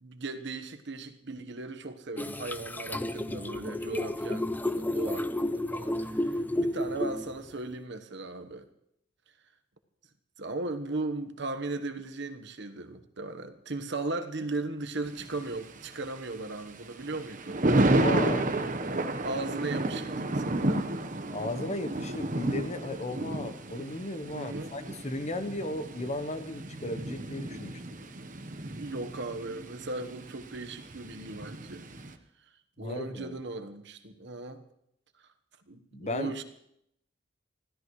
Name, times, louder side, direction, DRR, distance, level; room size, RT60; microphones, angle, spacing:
voice 1, 0.0-8.7 10.4-17.6 19.2-20.9 24.3-24.7 28.7-31.9 32.8-34.6 35.7-36.4, right 2 dB, 65° right, 7 dB, 1.2 m, -37 dB
sound 1, 2.2-7.5, left 1 dB, 10° left, 0.5 m, -31 dB
Thunder, 15.1-32.1, right 2 dB, 45° right, 1.1 m, -32 dB
voice 2, 17.8-18.5 21.3-27.8 32.8-33.4 35.9-36.3, left 2 dB, 35° left, 10 dB, 0.9 m, -35 dB
25.0 x 16.0 x 3.2 m, 0.75 s
head